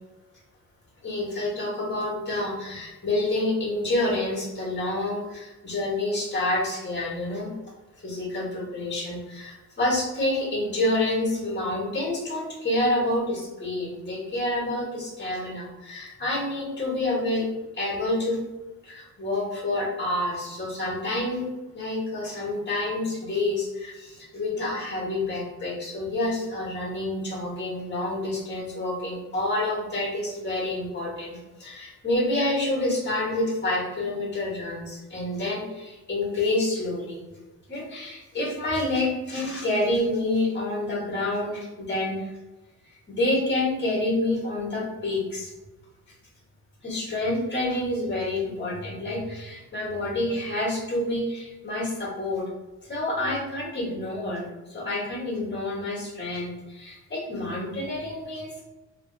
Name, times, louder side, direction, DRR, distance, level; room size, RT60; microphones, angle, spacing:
voice 1, 1.0-7.5 8.0-17.4 17.7-18.4 18.8-21.5 21.7-37.2 37.7-42.3 42.9-45.5 46.8-52.5 52.8-58.6, left 1 dB, 30° left, -5 dB, 1.3 m, -28 dB
3.1 x 2.6 x 2.4 m, 1.1 s
cardioid pair, 70°, 38 cm